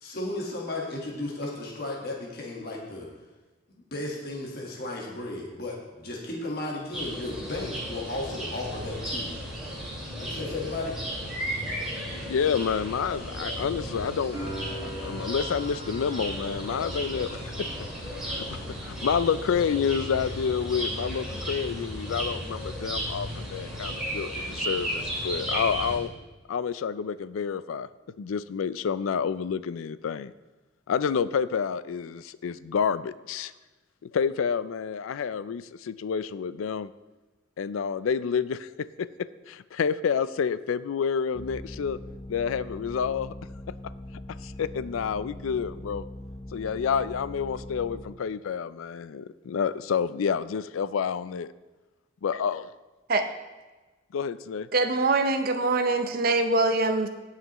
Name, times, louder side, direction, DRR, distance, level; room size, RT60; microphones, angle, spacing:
voice 1, 0.0-3.1 3.7-9.4 10.1-11.0, left 2 dB, 50° left, -2 dB, 1.5 m, -34 dB
sound 1, 6.9-26.0, equal, 5° right, 2.6 m, -34 dB
voice 2, 12.3-14.4 14.8-17.7 18.3-26.1 26.5-27.9 28.2-30.3 30.9-33.5 34.0-36.9 37.6-42.0 42.3-43.3 44.4-46.0 46.5-51.5 52.2-52.6 54.1-54.7, left 6 dB, 85° left, 16 dB, 0.4 m, -29 dB
sound 2, 14.3-21.1 21.4-22.3, equal, 20° right, 2.1 m, -43 dB
sound 3, 41.3-48.0, left 1 dB, 30° left, 0.9 m, -41 dB
voice 3, 54.7-57.1, right 3 dB, 45° right, 7 dB, 0.6 m, -23 dB
17.0 x 5.7 x 3.0 m, 1.2 s
head